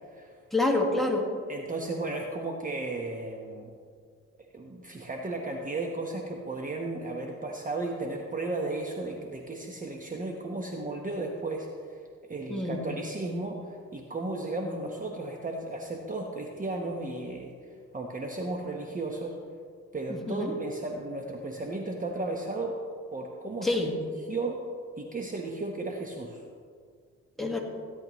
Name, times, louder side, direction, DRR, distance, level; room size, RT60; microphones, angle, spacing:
voice 1, 0.5-1.3 12.5-12.8 20.1-20.6 23.6-23.9 27.4-27.6, left 2 dB, ahead, 0 dB, 1.9 m, -27 dB
voice 2, 1.5-3.7 4.4-19.4 19.9-22.8 23.1-23.9 24.3-24.6 25.0-26.4, right 2 dB, 25° right, 1 dB, 1.1 m, -34 dB
16.5 x 10.5 x 3.1 m, 2.1 s
cardioid pair, 90°, 30 cm